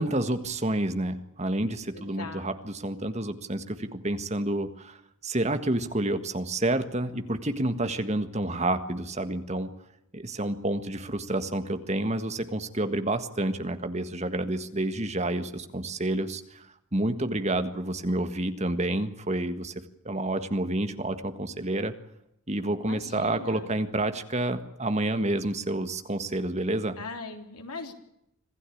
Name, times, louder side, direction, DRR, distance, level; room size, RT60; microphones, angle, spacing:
voice 1, 0.0-5.0 5.2-9.7 10.1-16.7 16.9-19.7 20.0-21.9 22.5-27.0, right 1 dB, 30° right, 9 dB, 1.7 m, -29 dB
voice 2, 1.9-2.5 22.8-23.7 27.0-27.9, left 3 dB, 90° left, 5 dB, 3.8 m, -40 dB
26.5 x 16.0 x 8.6 m, 0.79 s
head